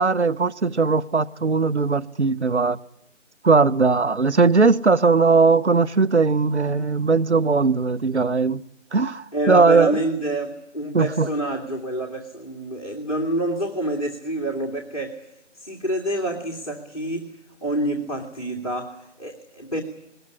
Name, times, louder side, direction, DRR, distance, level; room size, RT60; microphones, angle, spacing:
voice 1, 0.0-2.8 3.4-8.6 8.9-9.9 10.9-11.3, right 4 dB, 65° right, 0.9 m, -19 dB
voice 2, 9.3-15.3 15.5-17.3 17.6-19.8, right 1 dB, 30° left, 2.2 m, -27 dB
21.5 x 19.0 x 9.8 m
figure-of-eight pair, 170°, 36 cm